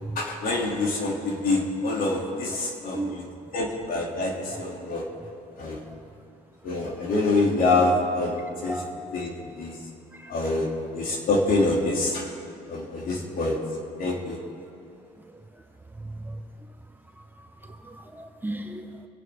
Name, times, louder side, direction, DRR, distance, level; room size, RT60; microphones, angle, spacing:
voice 1, 0.1-3.2 3.5-5.0 5.6-5.8 6.6-8.8 9.1-9.8 10.3-12.3 12.7-13.6 14.0-14.4, left 2 dB, 55° left, -1 dB, 3.1 m, -26 dB
voice 2, 2.9-3.5 4.5-4.6 5.9-6.0 8.7-8.9 10.1-10.3 15.9-16.4 17.6-19.0, right 2 dB, 10° right, 4 dB, 1.0 m, -36 dB
26.5 x 8.8 x 3.8 m, 2.6 s
cardioid pair, 110°, 17 cm